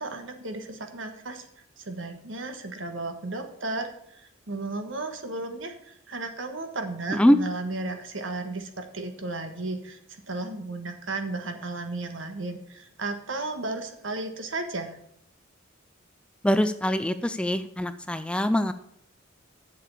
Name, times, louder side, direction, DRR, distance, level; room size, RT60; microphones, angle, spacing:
voice 1, 0.0-1.5 1.8-10.0 10.3-15.0, right 2 dB, 70° right, 7 dB, 1.4 m, -34 dB
voice 2, 16.4-18.7, equal, 5° left, 11 dB, 0.4 m, -23 dB
7.5 x 6.9 x 8.1 m, 0.71 s
head